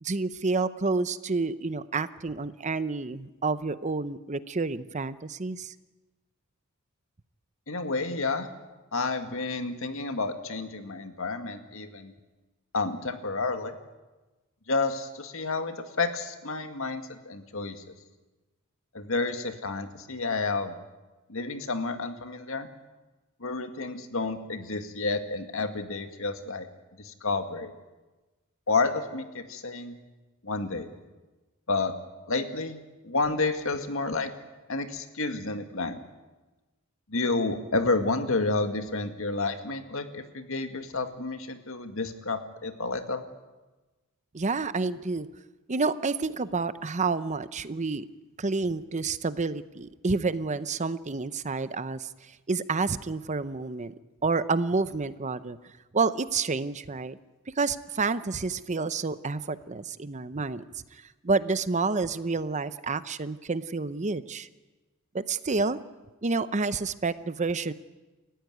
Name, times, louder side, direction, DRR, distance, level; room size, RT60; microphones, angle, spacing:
voice 1, 0.0-5.7 44.3-45.3 45.7-48.1 48.4-52.1 52.5-53.9 54.2-55.6 55.9-57.2 57.6-60.6 60.9-64.5 65.1-65.8 66.2-67.7, right 4 dB, 35° right, 14 dB, 0.7 m, -29 dB
voice 2, 7.7-8.5 8.9-12.1 12.7-13.8 14.7-17.8 18.9-20.7 21.3-22.7 23.4-26.7 27.0-27.7 28.7-30.0 30.4-30.9 31.7-31.9 32.3-32.8 33.0-34.3 34.7-36.0 37.1-43.3, left 3 dB, 70° left, 7 dB, 2.1 m, -30 dB
29.5 x 15.0 x 9.3 m, 1.2 s
head